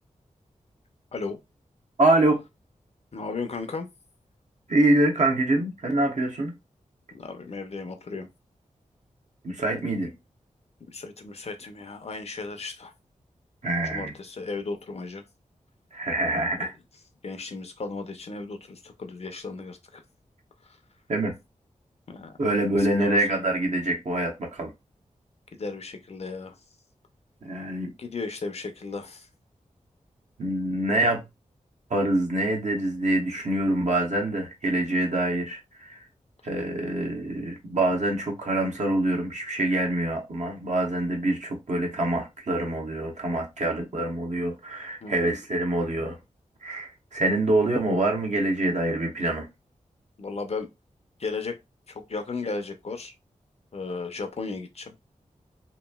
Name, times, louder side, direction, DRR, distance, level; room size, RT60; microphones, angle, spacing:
voice 1, 2.0-2.4 4.7-6.5 9.4-10.1 13.6-14.1 15.9-16.7 21.1-21.3 22.4-24.7 27.4-27.9 30.4-31.2 31.9-36.0 36.4-46.2 46.6-49.5, right 1 dB, 65° right, 1.0 m, -25 dB
voice 2, 3.1-3.9 7.1-8.3 10.9-12.9 13.9-15.2 16.6-16.7 17.2-20.0 22.1-22.3 22.8-23.2 25.6-26.5 28.0-29.3 45.0-45.3 50.2-50.7 51.2-51.6 51.9-53.1 53.7-54.9, left 4 dB, 50° left, 0.6 m, -35 dB
3.0 x 2.5 x 2.2 m
wide cardioid pair, 65°, 13 cm